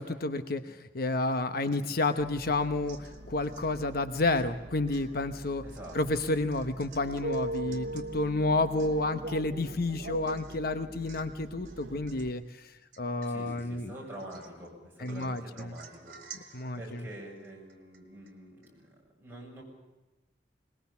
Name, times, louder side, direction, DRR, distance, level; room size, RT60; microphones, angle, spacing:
voice 1, 0.0-5.6 5.9-12.7 13.0-13.9 15.0-15.7 16.5-17.0, left 2 dB, 55° left, 9 dB, 1.0 m, -30 dB
Domestic sounds home sounds / Chink clink / Drip, 1.6-2.2 2.6-3.7 4.4-4.6 4.9-8.1 8.5-8.6 8.8-9.3 9.7-9.8 10.3-10.7 11.1-11.4 11.7-12.4 12.9-13.7 14.1-14.7 15.1-18.4 18.6-18.7, right 7 dB, 50° right, 4.1 m, -54 dB
sound 1, 2.2-12.3, right 1 dB, 70° right, 1.2 m, -41 dB
voice 2, 5.6-6.0 13.2-19.6, right 1 dB, 10° right, -3 dB, 7.6 m, -47 dB
Bass guitar, 7.7-11.8, left 3 dB, 5° left, 3.8 m, -53 dB
22.0 x 21.0 x 7.1 m, 1.1 s
head